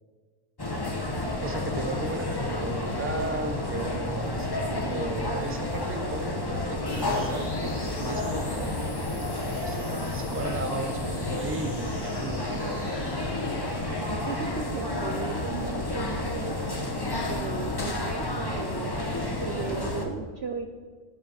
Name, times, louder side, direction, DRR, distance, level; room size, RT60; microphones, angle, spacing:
sound 1, 0.6-20.1, left 2 dB, 15° left, 1.0 m, -30 dB
voice 1, 1.4-8.8 9.1-12.8, right 2 dB, 10° right, 5 dB, 0.8 m, -36 dB
sound 2, 6.9-14.5, left 1 dB, 45° left, 3.1 m, -46 dB
voice 2, 14.1-16.6 17.2-20.7, right 5 dB, 55° right, 5 dB, 0.8 m, -36 dB
16.5 x 7.8 x 5.6 m, 1.5 s
omnidirectional pair, 1.6 m